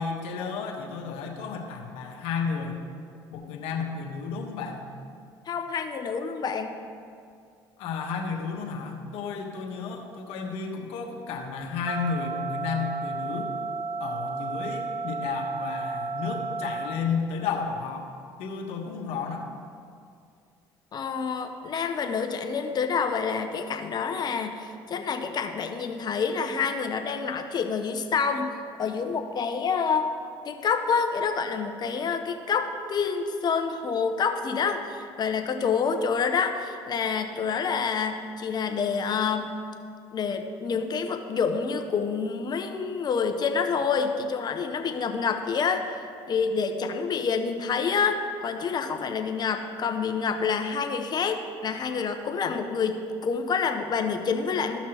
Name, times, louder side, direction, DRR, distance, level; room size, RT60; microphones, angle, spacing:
voice 1, 0.0-2.7 3.3-4.9 7.8-13.5 14.0-18.1 18.4-19.5, left 5 dB, 75° left, 1 dB, 1.2 m, -32 dB
voice 2, 5.5-6.7 20.9-28.5 28.8-30.1 30.4-39.6 40.1-54.8, left 5 dB, 45° left, 6 dB, 0.9 m, -27 dB
sound 1, 11.9-16.9, right 4 dB, 30° right, 0.7 m, -32 dB
14.0 x 5.9 x 3.0 m, 2.4 s
supercardioid pair, 80°, 10 cm